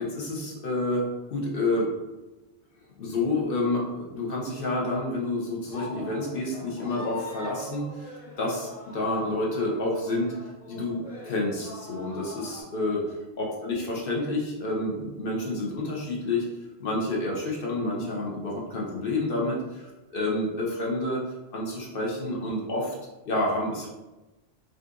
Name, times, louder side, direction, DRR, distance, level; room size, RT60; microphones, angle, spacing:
voice 1, 0.0-1.9 3.0-10.3 10.7-16.5 16.8-21.2 21.5-23.0 23.3-23.9, left 2 dB, 55° left, -3 dB, 0.9 m, -29 dB
sound 1, 5.7-12.6, left 2 dB, 40° left, 0.5 m, -43 dB
4.1 x 2.4 x 2.5 m, 1.1 s
omnidirectional pair, 1.2 m